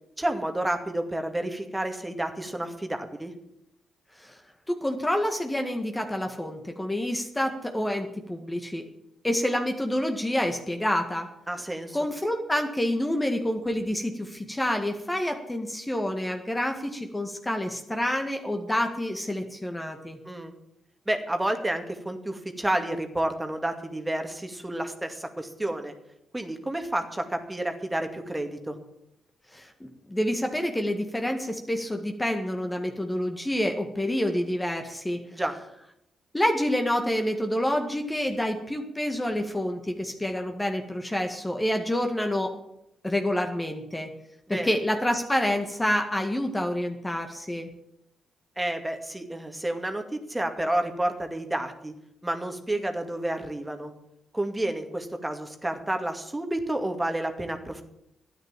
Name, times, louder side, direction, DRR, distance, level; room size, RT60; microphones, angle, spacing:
voice 1, 0.2-3.3 11.5-12.0 20.2-20.5 21.1-25.9 26.3-28.8 35.3-35.5 44.5-44.7 48.6-51.9 52.2-53.9 54.3-57.8, right 1 dB, 15° right, 5 dB, 2.2 m, -30 dB
voice 2, 4.7-8.8 9.2-11.3 11.9-20.2 29.5-35.2 36.3-42.5 43.0-44.1 44.5-47.7, left 1 dB, 15° left, 4 dB, 1.9 m, -28 dB
13.0 x 9.6 x 7.6 m, 0.80 s
hypercardioid pair, 40°, 0 cm